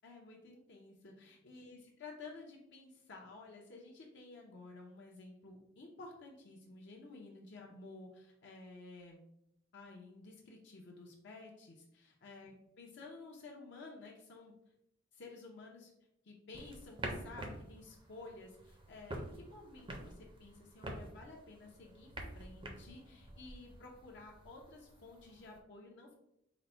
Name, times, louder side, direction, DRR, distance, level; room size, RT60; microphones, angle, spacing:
voice 1, 0.0-9.2 9.7-14.5 15.1-15.9 16.2-26.1, left 3 dB, 60° left, -1 dB, 0.5 m, -53 dB
sound 1, 16.5-25.6, right 1 dB, 25° right, 0.5 m, -48 dB
3.9 x 2.0 x 4.2 m, 0.79 s
head